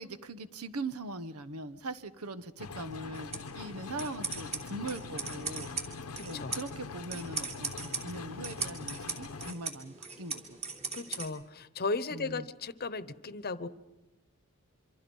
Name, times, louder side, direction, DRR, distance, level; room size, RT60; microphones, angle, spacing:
voice 1, 0.0-5.9 6.3-10.6 12.1-12.5, right 2 dB, 90° right, 12 dB, 1.2 m, -41 dB
sound 1, 2.6-9.5, left 4 dB, 85° left, 0.9 m, -43 dB
sound 2, 3.1-11.3, right 4 dB, 30° right, 3.3 m, -40 dB
voice 2, 6.2-6.5 10.9-13.7, left 3 dB, 45° left, 14 dB, 1.0 m, -36 dB
26.5 x 25.0 x 5.5 m, 0.99 s
head